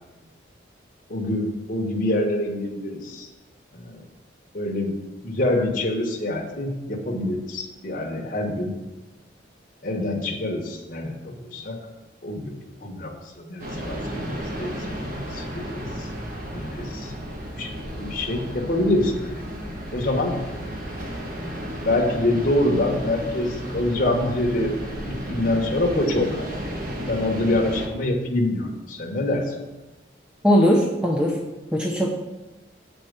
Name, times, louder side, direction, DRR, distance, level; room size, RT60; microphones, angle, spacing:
voice 1, 1.1-3.3 3.7-4.0 4.5-4.9 5.2-8.7 9.8-11.8 12.2-16.1 16.5-17.1 17.5-19.3 19.9-20.4 21.8-24.7 25.0-29.5, left 1 dB, 45° left, -1 dB, 1.0 m, -26 dB
sound 1, 13.6-27.9, equal, 45° right, 1.2 m, -33 dB
voice 2, 30.4-31.4 31.7-32.1, equal, 5° right, -1 dB, 0.6 m, -19 dB
7.2 x 4.2 x 6.6 m, 1.1 s
head